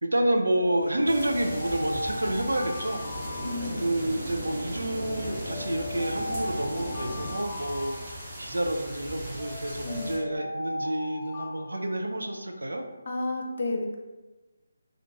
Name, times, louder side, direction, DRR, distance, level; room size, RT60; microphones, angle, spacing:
voice 1, 0.0-3.0 3.8-12.8, right 1 dB, 70° right, 3 dB, 0.4 m, -29 dB
Alarm, 0.6-4.3 5.0-8.7 9.4-12.6, left 2 dB, 5° left, 0.6 m, -38 dB
sound 1, 0.8-7.4, right 1 dB, 55° right, 1.1 m, -38 dB
sound 2, 1.1-10.2, equal, 20° right, 0.9 m, -40 dB
voice 2, 3.4-3.8 9.8-10.1 13.1-13.9, left 2 dB, 55° left, 1 dB, 0.5 m, -31 dB
2.5 x 2.2 x 3.9 m, 1.2 s
figure-of-eight pair, 150°, 0 cm